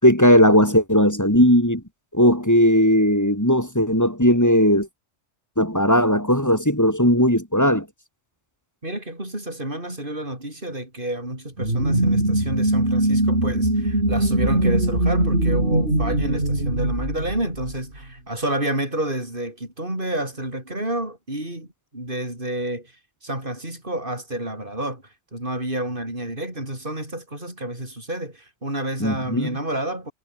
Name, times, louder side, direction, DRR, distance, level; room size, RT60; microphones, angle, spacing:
voice 1, 0.0-1.8 2.1-4.9 5.6-7.9 29.0-29.5, equal, 15° left, 4.2 m, -17 dB
voice 2, 8.8-21.7 21.9-30.1, right 1 dB, 45° right, 8.1 m, -29 dB
sound 1, 11.6-18.0, right 1 dB, 60° right, 7.9 m, -21 dB
omnidirectional pair, 1.2 m